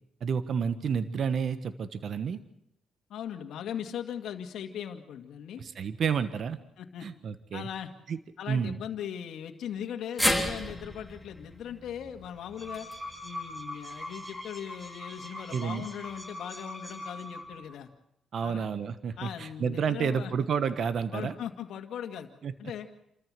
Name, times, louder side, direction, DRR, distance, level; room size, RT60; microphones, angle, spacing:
voice 1, 0.2-2.4 5.6-6.6 7.0-7.7 8.1-8.2 8.5-8.8 15.5-15.9 18.3-21.3 22.4-22.5, right 6 dB, 55° right, 12 dB, 1.3 m, -30 dB
voice 2, 3.1-5.6 6.8-7.1 7.5-7.9 8.4-12.9 13.2-17.9 18.4-18.7 19.2-20.3 21.1-22.3 22.6-23.1, left 9 dB, 75° left, 5 dB, 2.1 m, -39 dB
sound 1, 10.2-14.4 14.8-14.9 16.1-16.2, left 1 dB, ahead, 3.3 m, -34 dB
sound 2, 12.3-17.7, left 1 dB, 20° right, 7.7 m, -42 dB
28.5 x 14.0 x 7.6 m, 0.78 s
cardioid pair, 90°, 0 cm